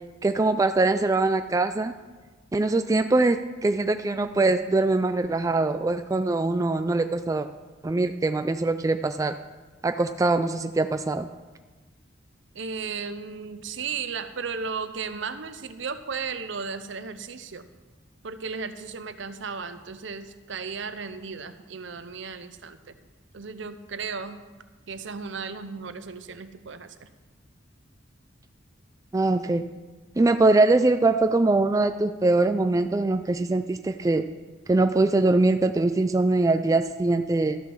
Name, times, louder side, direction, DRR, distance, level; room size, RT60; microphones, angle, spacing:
voice 1, 0.2-1.9 2.5-7.5 7.8-9.4 9.8-11.3 29.1-29.7 30.2-34.2 34.7-37.6, right 2 dB, 15° right, 9 dB, 0.3 m, -22 dB
voice 2, 12.5-17.6 18.2-23.0 23.3-24.4 24.9-27.1, right 5 dB, 65° right, 11 dB, 0.7 m, -35 dB
13.0 x 7.0 x 6.2 m, 1.3 s
head